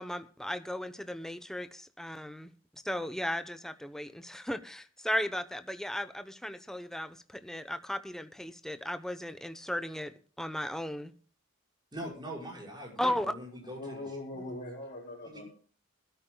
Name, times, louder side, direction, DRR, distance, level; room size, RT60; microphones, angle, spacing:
voice 1, 0.0-2.5 2.8-11.1 13.0-13.3, left 1 dB, 5° left, 0.9 m, -36 dB
voice 2, 11.9-14.6, equal, 25° right, 5.9 m, -43 dB
voice 3, 13.8-15.5, left 1 dB, 40° left, 4.2 m, -41 dB
21.5 x 13.0 x 2.3 m
head